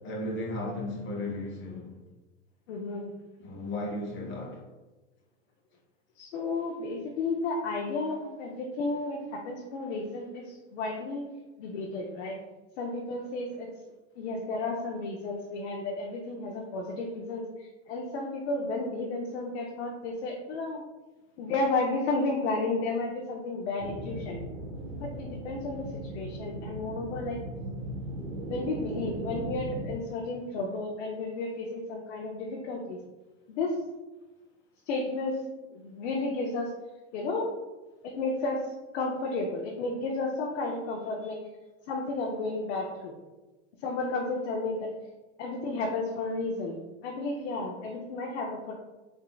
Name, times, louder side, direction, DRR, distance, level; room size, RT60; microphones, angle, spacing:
voice 1, 0.0-1.9 3.4-4.6, left 1 dB, 35° left, -1 dB, 1.0 m, -35 dB
voice 2, 2.7-3.1 6.2-11.2 11.6-12.4 12.8-13.7 14.2-17.4 17.9-20.8 21.4-24.4 24.9-25.9 26.1-27.4 28.5-33.0 33.5-33.8 34.9-35.4 35.7-36.7 37.1-37.5 38.0-38.6 38.9-41.4 41.9-43.1 43.8-44.9 45.4-48.8, left 3 dB, 80° left, 0 dB, 0.6 m, -32 dB
sound 1, 23.8-29.9, right 1 dB, 80° right, 0.8 m, -38 dB
4.3 x 2.7 x 2.2 m, 1.1 s
supercardioid pair, 120°, 34 cm